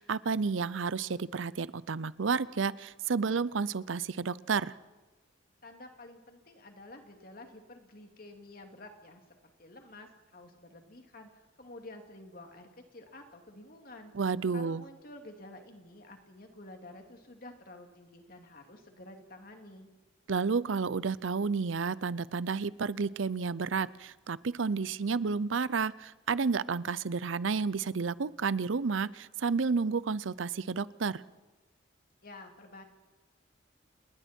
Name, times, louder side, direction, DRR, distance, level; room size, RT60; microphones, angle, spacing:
voice 1, 0.0-4.7 14.1-14.8 20.3-31.2, right 5 dB, 85° right, 19 dB, 0.6 m, -31 dB
voice 2, 5.6-9.2 9.6-14.1 14.5-19.9 32.2-32.8, left 2 dB, 50° left, 4 dB, 2.7 m, -50 dB
29.0 x 20.5 x 4.5 m, 1.2 s
head